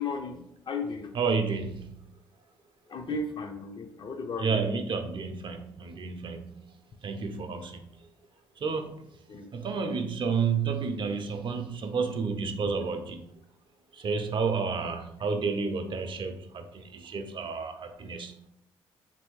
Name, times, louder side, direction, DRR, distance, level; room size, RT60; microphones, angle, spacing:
voice 1, 0.0-1.1 2.9-4.6 9.3-9.5, left 3 dB, 45° left, 6 dB, 0.5 m, -35 dB
voice 2, 1.1-2.0 4.4-7.8 8.6-9.2 9.5-13.2 13.9-18.4, right 5 dB, 50° right, 6 dB, 0.5 m, -31 dB
3.0 x 2.6 x 3.0 m, 0.74 s
supercardioid pair, 60°, 11 cm